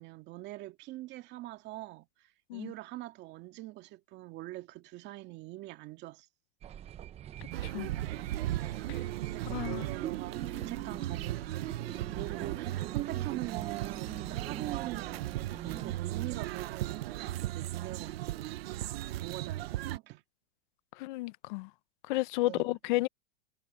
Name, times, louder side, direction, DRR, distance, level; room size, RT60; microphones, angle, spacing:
voice 1, 0.0-6.3 8.7-18.6 19.2-20.2 22.4-22.8, right 17 dB, 35° right, 2.1 m, -44 dB
sound 1, 6.6-16.0, right 10 dB, 20° right, 0.9 m, -44 dB
sound 2, 7.5-20.0, right 15 dB, 70° right, 0.9 m, -36 dB
voice 2, 7.6-7.9 9.5-9.9 21.0-21.7 22.1-23.1, left 19 dB, 50° left, 0.8 m, -32 dB
supercardioid pair, 145°, 31 cm